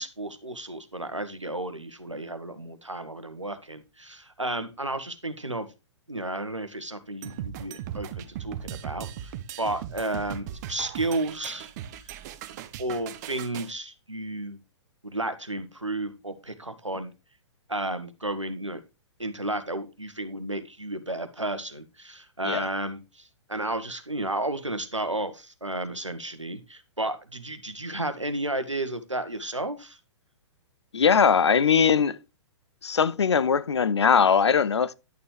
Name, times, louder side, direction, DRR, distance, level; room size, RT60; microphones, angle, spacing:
voice 1, 0.0-5.7 6.1-12.0 12.8-14.6 15.0-17.1 17.7-18.8 19.2-30.0, right 2 dB, 85° right, 1.5 m, -32 dB
sound 1, 7.2-13.7, right 10 dB, 35° right, 1.0 m, -38 dB
voice 2, 30.9-32.2 32.8-34.9, left 6 dB, 65° left, 0.7 m, -21 dB
11.0 x 7.0 x 3.2 m
figure-of-eight pair, 115°, 15 cm